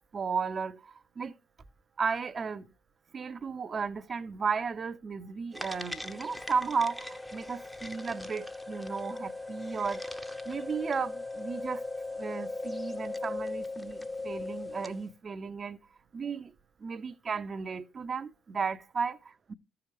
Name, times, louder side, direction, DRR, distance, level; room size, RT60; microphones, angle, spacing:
voice 1, 0.1-1.3 2.0-2.7 3.1-10.0 10.5-11.8 12.2-15.8 16.1-16.5 16.8-19.5, right 5 dB, 40° right, 0.6 m, -34 dB
sound 1, 5.5-15.1, left 2 dB, 5° left, 0.8 m, -39 dB
14.5 x 4.9 x 3.1 m
figure-of-eight pair, 45°, 0 cm